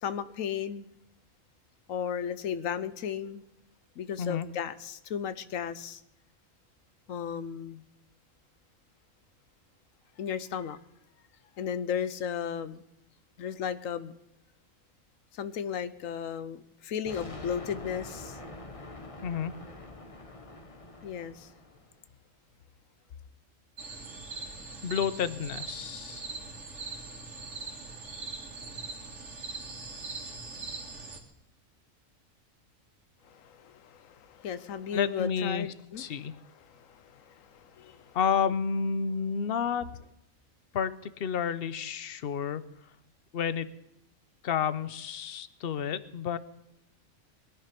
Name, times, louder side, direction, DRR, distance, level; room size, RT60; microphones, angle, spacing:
voice 1, 0.0-0.9 1.9-3.4 4.0-6.0 7.1-7.8 10.2-10.8 11.6-12.8 13.4-14.1 15.3-18.4 21.0-21.5 33.2-38.2, left 8 dB, 80° left, 15 dB, 1.2 m, -35 dB
sound 1, 17.1-21.9, left 2 dB, 25° left, 1.3 m, -45 dB
voice 2, 19.2-19.5 24.8-26.3 34.9-35.7 36.0-36.3 38.1-39.9 40.7-42.6 43.3-43.7 44.4-46.4, left 7 dB, 55° left, 15 dB, 0.9 m, -30 dB
sound 2, 23.8-31.2, right 4 dB, 60° right, 2.5 m, -41 dB
21.5 x 10.5 x 5.9 m, 0.84 s
omnidirectional pair, 1.4 m